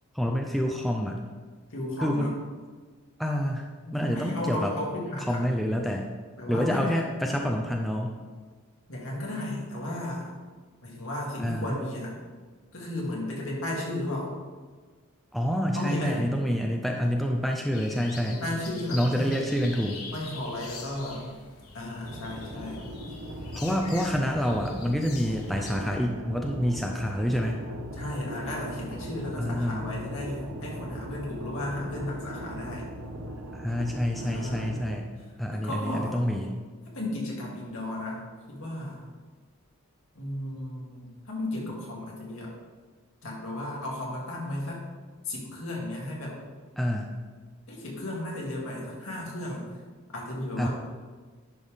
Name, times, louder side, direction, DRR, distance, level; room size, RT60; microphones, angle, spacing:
voice 1, 0.1-1.2 2.0-2.4 3.2-4.7 5.3-6.1 6.5-8.2 11.4-11.8 15.3-18.4 18.9-20.0 23.5-27.6 29.4-29.9 33.5-35.1 35.4-36.5 46.8-47.1 50.6-50.7, equal, ahead, 1 dB, 0.4 m, -27 dB
voice 2, 1.7-2.3 3.8-5.5 6.4-7.0 8.9-10.3 10.8-12.1 12.7-14.3 15.7-16.2 18.1-19.4 20.1-21.3 21.7-22.8 28.0-32.9 34.2-34.7 35.5-36.3 36.9-39.0 40.1-42.5 43.2-44.8 45.2-46.4 47.7-49.7 50.1-50.7, left 1 dB, 65° left, -4 dB, 2.2 m, -34 dB
sound 1, 17.7-25.8, left 4 dB, 80° left, 1.3 m, -44 dB
sound 2, 22.0-35.0, equal, 70° right, 0.9 m, -39 dB
10.5 x 5.4 x 3.5 m, 1.5 s
head